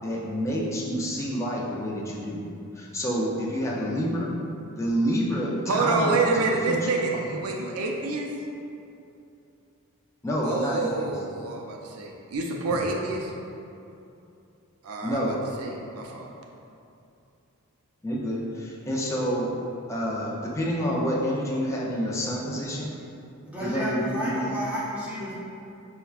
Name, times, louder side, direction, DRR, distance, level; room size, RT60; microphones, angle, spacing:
voice 1, 0.0-2.4 2.7-4.3 4.8-6.4 6.7-6.8 7.3-7.4 10.2-11.1 15.0-15.4 18.0-19.5 19.9-22.9 23.6-24.4, equal, 15° left, -4 dB, 0.4 m, -28 dB
voice 2, 5.7-8.3 10.4-13.3 14.8-16.3, right 3 dB, 80° right, 0 dB, 0.5 m, -28 dB
voice 3, 23.5-25.3, equal, 5° right, -8 dB, 0.8 m, -31 dB
5.5 x 2.1 x 2.4 m, 2.7 s
head